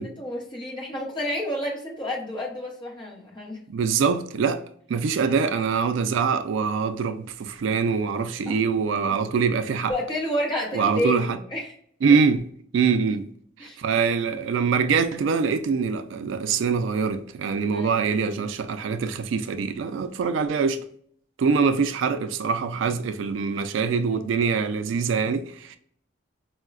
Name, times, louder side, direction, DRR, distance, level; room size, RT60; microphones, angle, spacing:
voice 1, 0.2-3.6 5.2-5.3 8.5-8.6 9.9-11.7 13.6-13.8 17.7-17.9 23.8-24.3, left 1 dB, 25° left, 0.9 m, -30 dB
voice 2, 3.7-4.6 4.9-9.9 10.7-11.4 12.0-12.5 12.7-13.3 13.6-20.8 21.4-25.8, right 5 dB, 75° right, 0.3 m, -24 dB
4.5 x 2.1 x 2.3 m
head